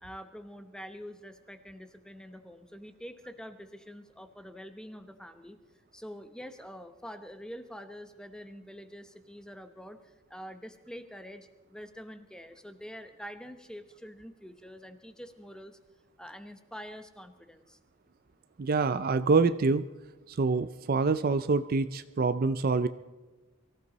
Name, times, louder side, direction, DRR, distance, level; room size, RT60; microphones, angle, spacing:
voice 1, 0.0-5.6 5.9-15.8 16.2-17.8, equal, 5° left, 9 dB, 0.9 m, -46 dB
voice 2, 18.6-19.9 20.3-22.9, right 4 dB, 40° right, 12 dB, 0.4 m, -26 dB
23.5 x 15.0 x 4.1 m, 1.2 s
head